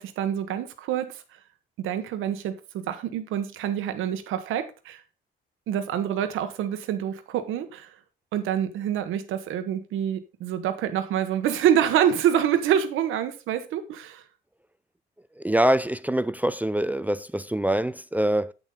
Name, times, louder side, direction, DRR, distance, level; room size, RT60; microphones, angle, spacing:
voice 1, 0.0-1.4 1.8-5.0 5.7-8.0 8.3-14.2, right 9 dB, 85° right, 1.1 m, -26 dB
voice 2, 15.4-18.5, right 1 dB, 10° right, 0.4 m, -24 dB
8.2 x 7.1 x 3.8 m
cardioid pair, 90°, 20 cm